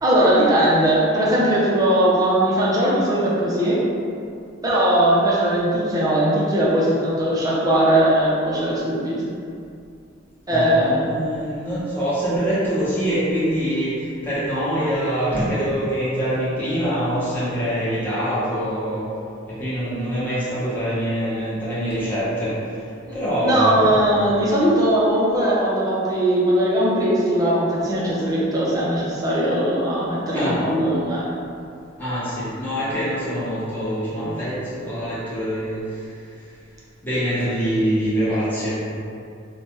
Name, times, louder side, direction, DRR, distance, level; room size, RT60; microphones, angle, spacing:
voice 1, 0.0-3.8 4.6-9.3 10.5-11.1 23.1-31.3, right 1 dB, 20° right, -7 dB, 0.6 m, -19 dB
voice 2, 10.5-19.1 19.5-22.8 23.1-24.0 30.3-30.6 32.0-36.1 37.0-38.7, equal, 10° left, -11 dB, 0.9 m, -24 dB
3.1 x 2.2 x 2.9 m, 2.5 s
head